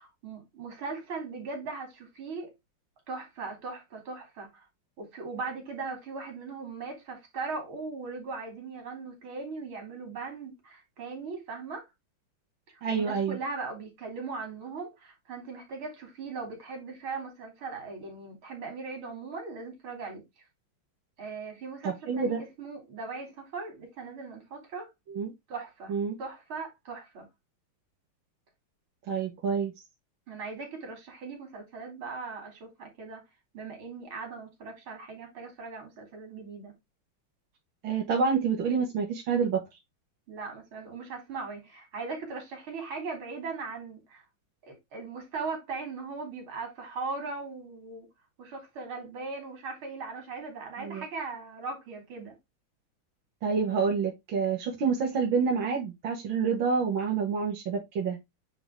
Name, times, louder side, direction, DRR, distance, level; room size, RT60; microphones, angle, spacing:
voice 1, 0.0-2.5 3.1-4.7 5.0-11.9 12.7-20.2 21.2-24.9 25.5-27.3 30.3-33.2 33.5-36.8 40.3-44.2 44.6-48.1 48.4-52.4, right 4 dB, 90° right, 3.8 m, -39 dB
voice 2, 12.8-13.4 21.8-22.4 25.1-25.3 25.9-26.2 29.1-29.7 37.8-39.6 50.8-51.0 53.4-58.2, right 5 dB, 75° right, 2.2 m, -28 dB
8.9 x 3.8 x 3.6 m
omnidirectional pair, 2.2 m